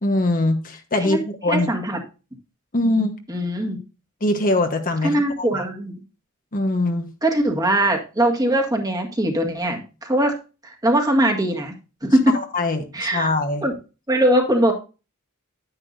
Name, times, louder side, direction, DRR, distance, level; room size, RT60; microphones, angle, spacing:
voice 1, 0.0-1.7 2.7-3.1 4.2-5.6 6.5-7.1 12.3-13.7, left 2 dB, 40° left, 5 dB, 1.1 m, -22 dB
voice 2, 1.5-2.0 3.3-3.8 5.0-6.0 7.2-10.4 10.6-11.7 12.0-12.3 12.9-13.3 13.6-13.7 14.1-14.7, right 1 dB, 15° right, 1 dB, 1.8 m, -21 dB
9.9 x 9.9 x 2.6 m, 0.31 s
head